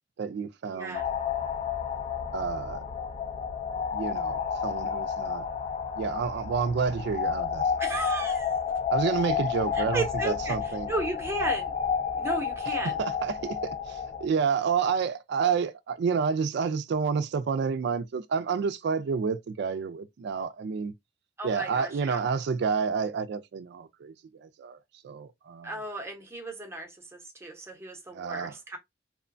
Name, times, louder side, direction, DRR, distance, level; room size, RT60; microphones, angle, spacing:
voice 1, 0.2-1.0 2.3-2.8 3.9-5.5 6.0-7.7 8.9-10.9 12.8-20.9 21.4-24.8 25.0-25.7 28.1-28.6, right 5 dB, 60° right, 0.3 m, -29 dB
voice 2, 0.7-1.1 7.8-8.5 9.7-10.6 10.9-11.7 12.2-13.0 21.4-22.2 25.6-28.8, right 2 dB, 15° right, 0.7 m, -34 dB
sound 1, 0.9-14.3, left 6 dB, 35° left, 0.4 m, -31 dB
2.9 x 2.1 x 2.5 m
head